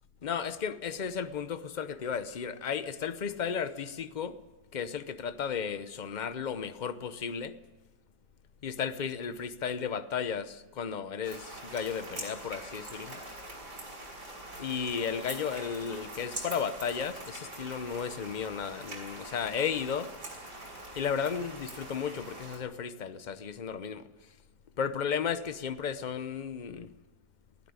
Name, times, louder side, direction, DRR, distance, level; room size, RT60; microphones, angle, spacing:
voice 1, 0.2-4.4 4.7-7.6 8.6-13.2 14.6-20.1 21.0-24.3 24.8-26.9, left 7 dB, 40° left, 0.7 m, -34 dB
sound 1, 11.2-22.6, right 1 dB, 75° right, 6.0 m, -43 dB
21.0 x 14.0 x 9.6 m
omnidirectional pair, 1.8 m